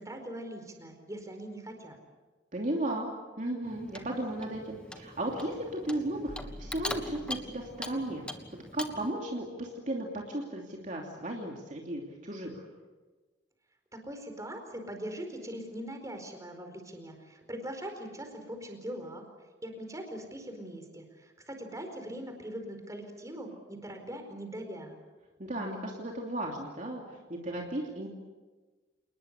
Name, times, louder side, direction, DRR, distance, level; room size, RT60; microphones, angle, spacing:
voice 1, 0.0-2.0 13.9-19.2 19.6-24.9, right 1 dB, 20° right, 5 dB, 4.5 m, -41 dB
voice 2, 2.5-3.1 3.4-8.2 8.5-12.6 25.4-28.1, right 1 dB, 45° right, 0 dB, 2.9 m, -35 dB
Clock, 3.6-9.1, left 1 dB, 5° left, 1.6 m, -42 dB
sound 1, 6.3-8.1, left 1 dB, 35° left, 1.2 m, -48 dB
29.0 x 20.0 x 8.4 m, 1.3 s
head